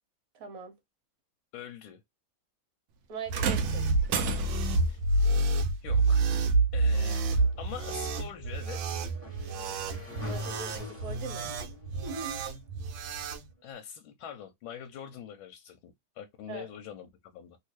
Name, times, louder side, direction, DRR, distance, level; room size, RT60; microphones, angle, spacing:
voice 1, 0.3-0.8 3.1-3.9 10.2-11.5 12.0-12.4 16.5-16.7, right 4 dB, 50° right, 1.3 m, -41 dB
voice 2, 1.5-2.0 4.9-5.0 5.8-6.4 6.7-7.2 7.6-9.0 13.6-17.6, left 9 dB, 85° left, 1.4 m, -44 dB
sound 1, 3.3-4.8 6.3-6.5 7.3-7.4, right 7 dB, 70° right, 1.0 m, -32 dB
sound 2, 3.3-13.4, right 2 dB, 90° right, 1.5 m, -28 dB
Motorcycle / Engine, 7.3-13.4, left 1 dB, 5° right, 1.5 m, -48 dB
3.1 x 2.8 x 3.0 m
omnidirectional pair, 2.2 m